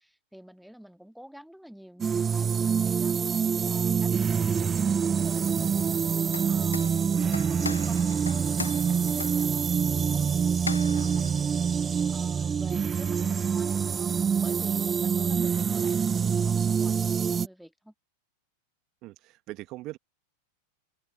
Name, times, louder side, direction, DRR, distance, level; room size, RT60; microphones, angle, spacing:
voice 1, 0.0-3.2 3.5-5.9 6.4-9.8 10.1-11.4 12.1-17.9, equal, ahead, 2.2 m, -49 dB
sound 1, 2.0-17.5, right 6 dB, 20° right, 0.6 m, -26 dB
sound 2, 6.2-11.9, left 4 dB, 80° left, 1.9 m, -40 dB
sound 3, 7.6-9.1 10.9-12.5 13.7-14.1, right 1 dB, 85° right, 1.8 m, -52 dB
voice 2, 19.0-20.0, right 18 dB, 40° right, 1.9 m, -41 dB
open air
figure-of-eight pair, 90°, 0 cm